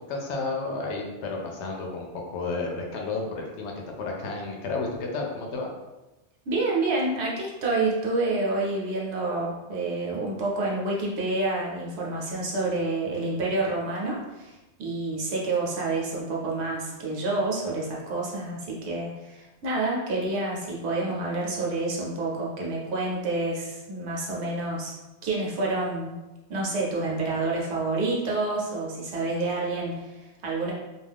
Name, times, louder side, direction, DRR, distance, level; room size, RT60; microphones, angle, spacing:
voice 1, 0.1-5.7, left 3 dB, 75° left, 0 dB, 0.9 m, -32 dB
voice 2, 6.5-14.5 14.8-24.9 25.2-26.2 26.5-30.7, right 2 dB, 70° right, -3 dB, 1.0 m, -28 dB
2.4 x 2.4 x 3.3 m, 1.1 s
omnidirectional pair, 1.2 m